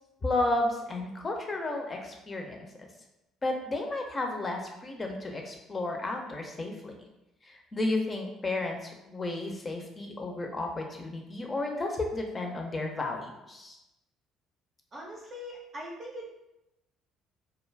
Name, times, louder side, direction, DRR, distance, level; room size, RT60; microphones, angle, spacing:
voice 1, 0.2-2.9 3.4-6.9 7.4-13.8, left 2 dB, 30° left, 2 dB, 0.6 m, -32 dB
voice 2, 14.9-16.3, equal, 40° right, -4 dB, 0.6 m, -41 dB
2.3 x 2.1 x 3.2 m, 0.93 s
figure-of-eight pair, 50°, 0 cm